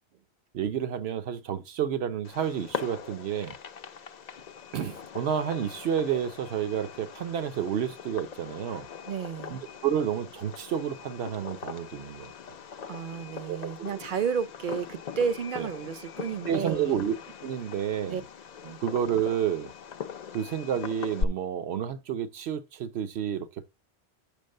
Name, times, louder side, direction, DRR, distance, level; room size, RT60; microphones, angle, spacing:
voice 1, 0.5-3.5 4.7-8.9 9.5-12.3 13.5-13.7 15.6-15.7 16.5-17.1 17.4-18.2 18.8-19.7 20.3-23.7, right 9 dB, 75° right, 1.0 m, -30 dB
Fireworks, 2.2-21.2, left 7 dB, 55° left, 0.5 m, -41 dB
voice 2, 9.1-9.6 12.9-17.0 18.1-18.2 18.6-18.8, right 7 dB, 55° right, 0.7 m, -32 dB
6.1 x 5.3 x 6.4 m
omnidirectional pair, 1.1 m